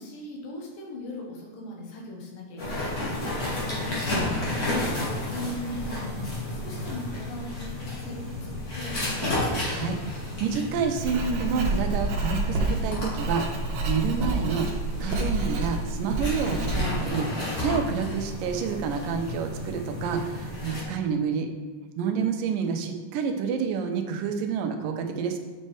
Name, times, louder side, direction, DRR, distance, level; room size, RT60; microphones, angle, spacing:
voice 1, 0.0-9.6, left 1 dB, 85° left, 0 dB, 2.9 m, -39 dB
sound 1, 2.6-20.8, left 1 dB, 35° left, 1.8 m, -32 dB
voice 2, 9.7-10.0 10.4-14.7 15.0-21.5 22.0-25.4, right 6 dB, 85° right, 5 dB, 2.4 m, -28 dB
Writing, 11.0-17.1, right 2 dB, 70° right, 2.4 m, -29 dB
8.5 x 5.3 x 3.3 m, 1.4 s
omnidirectional pair, 3.8 m